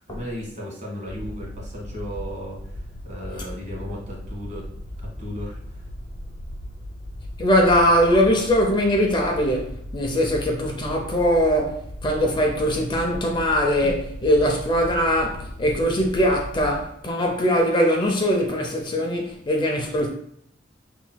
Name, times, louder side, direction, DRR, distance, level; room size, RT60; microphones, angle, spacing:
voice 1, 0.1-4.7 5.0-5.8, equal, 40° right, 1.3 m, -35 dB
sound 1, 1.1-16.8, equal, 70° left, 0.9 m, -37 dB
voice 2, 7.4-20.1, equal, 25° left, 0.5 m, -21 dB
5.7 x 3.0 x 2.2 m
head